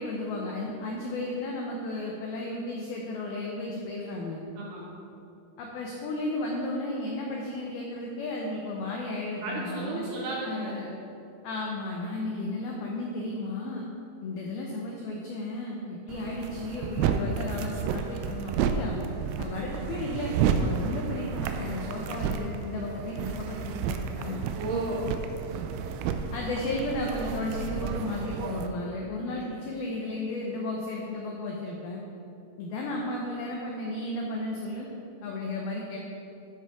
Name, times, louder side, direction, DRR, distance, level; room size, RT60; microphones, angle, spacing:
voice 1, 0.0-4.4 5.6-10.1 10.4-10.9 11.4-13.9 14.2-19.0 19.4-24.4 26.3-32.0 32.6-34.9 35.2-36.0, left 2 dB, 85° left, -2 dB, 2.1 m, -34 dB
voice 2, 4.6-4.9 9.4-10.9 24.5-25.1 29.2-29.4, right 2 dB, 70° right, -4 dB, 2.6 m, -33 dB
sound 1, 16.1-28.7, right 6 dB, 85° right, 3.1 m, -31 dB
12.5 x 8.5 x 3.6 m, 2.8 s
omnidirectional pair, 5.7 m